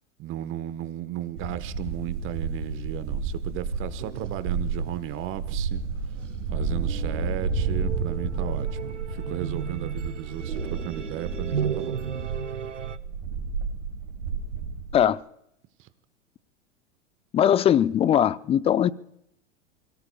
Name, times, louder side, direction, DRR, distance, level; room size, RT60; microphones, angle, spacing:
voice 1, 0.2-5.8 6.5-12.0 15.8-15.9, right 13 dB, 35° right, 1.2 m, -35 dB
sound 1, 1.4-15.0, right 4 dB, 55° right, 4.7 m, -31 dB
sound 2, 4.0-13.0, right 7 dB, 85° right, 0.8 m, -35 dB
voice 2, 17.3-18.9, left 10 dB, 15° left, 0.5 m, -20 dB
29.0 x 18.0 x 2.3 m
figure-of-eight pair, 90°, 36 cm